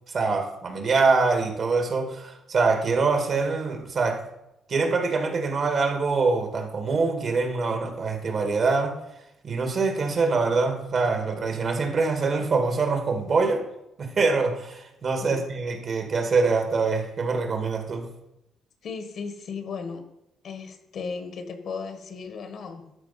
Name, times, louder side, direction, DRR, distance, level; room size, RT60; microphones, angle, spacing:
voice 1, 0.1-4.2 4.7-9.0 9.4-13.7 14.0-18.1, right 4 dB, 50° right, 4 dB, 2.0 m, -24 dB
voice 2, 18.8-20.0 20.4-22.9, left 5 dB, 65° left, 7 dB, 1.5 m, -36 dB
12.5 x 4.5 x 5.9 m, 0.86 s
cardioid pair, 90°, 0 cm